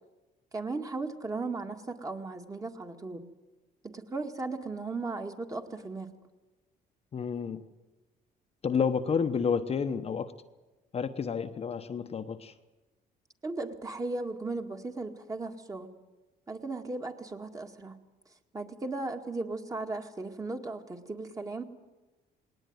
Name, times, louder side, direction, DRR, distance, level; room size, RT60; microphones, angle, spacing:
voice 1, 0.5-3.3 3.8-6.1 13.4-15.9 16.5-18.0 18.5-21.6, right 3 dB, 20° right, 4 dB, 2.0 m, -36 dB
voice 2, 7.1-7.7 8.6-10.3 10.9-12.5, left 6 dB, 35° left, 7 dB, 1.0 m, -30 dB
20.0 x 19.0 x 9.4 m, 1.1 s
cardioid pair, 110°, 17 cm